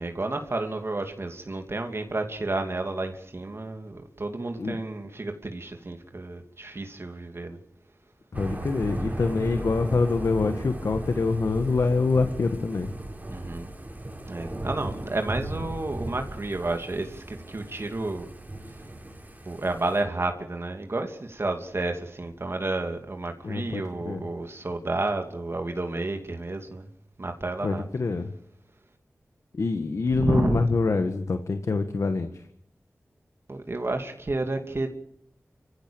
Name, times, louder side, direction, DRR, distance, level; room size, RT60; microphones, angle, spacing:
voice 1, 0.0-7.6 13.3-13.7 14.3-18.3 18.7-18.9 19.4-26.9 27.2-27.9 30.1-30.6 33.5-34.9, right 2 dB, 55° right, 2.7 m, -31 dB
voice 2, 8.3-12.9 23.4-24.2 27.6-28.3 29.5-32.3, left 3 dB, 75° left, 1.6 m, -25 dB
Thunder / Rain, 8.3-20.0, right 1 dB, 30° right, 4.6 m, -36 dB
27.5 x 15.5 x 8.9 m
cardioid pair, 40°, 5 cm